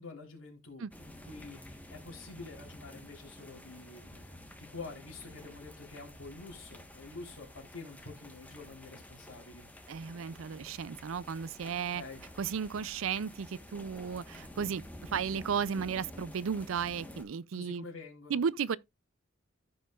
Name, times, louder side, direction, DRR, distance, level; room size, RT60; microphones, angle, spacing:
voice 1, 0.0-9.7 11.9-12.2 17.5-18.4, left 3 dB, 90° left, 3.6 m, -48 dB
sound 1, 0.9-17.2, left 1 dB, 10° left, 1.3 m, -50 dB
voice 2, 9.9-12.0 12.4-17.9 18.3-18.8, right 6 dB, 75° right, 0.4 m, -34 dB
14.5 x 5.5 x 2.4 m
head